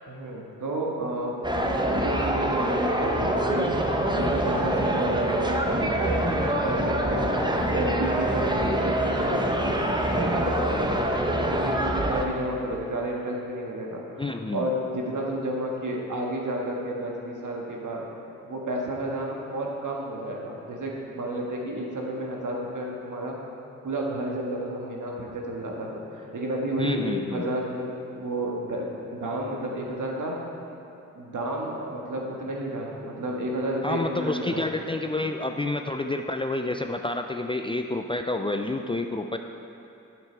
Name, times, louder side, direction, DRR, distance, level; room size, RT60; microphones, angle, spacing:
voice 1, 0.1-3.7 4.1-7.4 7.7-9.8 10.1-18.1 18.4-23.4 23.8-30.4 31.1-34.6, right 1 dB, 55° right, -1 dB, 1.7 m, -31 dB
sound 1, 1.4-12.2, right 1 dB, 10° right, 1.0 m, -25 dB
voice 2, 14.2-14.7 26.8-27.5 33.8-39.4, left 2 dB, 15° left, 5 dB, 0.4 m, -29 dB
9.2 x 7.0 x 4.5 m, 2.8 s
supercardioid pair, 40°, 36 cm